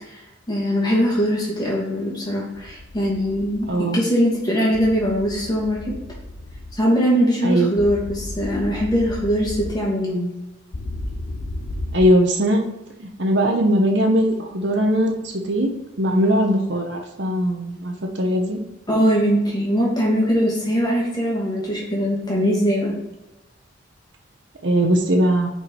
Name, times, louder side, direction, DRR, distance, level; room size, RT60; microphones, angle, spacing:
voice 1, 0.5-5.9 6.7-10.3 18.9-23.0, equal, 20° left, -4 dB, 2.4 m, -21 dB
sound 1, 2.6-3.7 4.7-6.8 7.8-9.8 10.7-12.0, left 1 dB, 70° left, 0.8 m, -33 dB
voice 2, 3.7-4.0 7.4-7.7 11.9-12.6 13.0-15.7 16.0-18.6 24.6-25.5, equal, 65° right, 2 dB, 1.1 m, -20 dB
7.9 x 4.7 x 4.7 m, 0.96 s
head